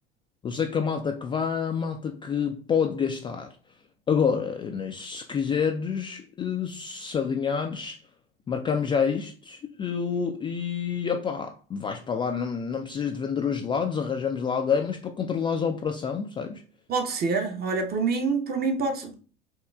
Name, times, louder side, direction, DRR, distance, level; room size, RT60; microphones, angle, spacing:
voice 1, 0.4-3.6 4.1-8.0 8.5-16.6, left 6 dB, 15° left, 0.3 m, -28 dB
voice 2, 16.9-19.1, right 4 dB, 30° right, 0.8 m, -26 dB
4.5 x 3.0 x 2.3 m
figure-of-eight pair, 75°, 30 cm